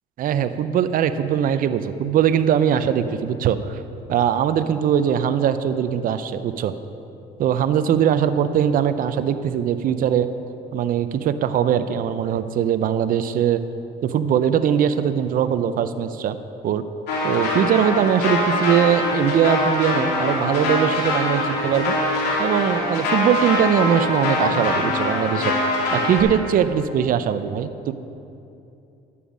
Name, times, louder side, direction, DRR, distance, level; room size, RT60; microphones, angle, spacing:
voice 1, 0.2-3.8 4.1-6.7 7.4-10.3 10.7-13.6 14.0-16.4 16.6-16.8 17.2-21.9 22.4-25.5 25.9-27.9, right 9 dB, 55° right, 11 dB, 0.6 m, -21 dB
sound 1, 17.1-26.2, left 2 dB, 80° left, 2.7 m, -23 dB
11.0 x 7.2 x 6.2 m, 2.7 s
cardioid pair, 110°, 17 cm